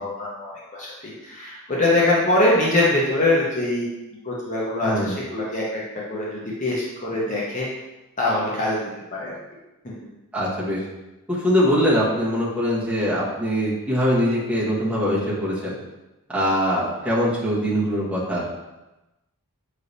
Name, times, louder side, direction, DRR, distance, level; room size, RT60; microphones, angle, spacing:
voice 1, 0.0-3.9 4.2-5.8 6.1-7.7 8.2-8.9 9.2-9.3 9.8-9.9, left 2 dB, 35° left, -5 dB, 0.8 m, -23 dB
voice 2, 4.8-5.1 10.3-10.8 11.3-15.7 16.3-18.5, equal, 5° right, -8 dB, 1.1 m, -22 dB
5.4 x 3.3 x 2.7 m, 1.0 s
head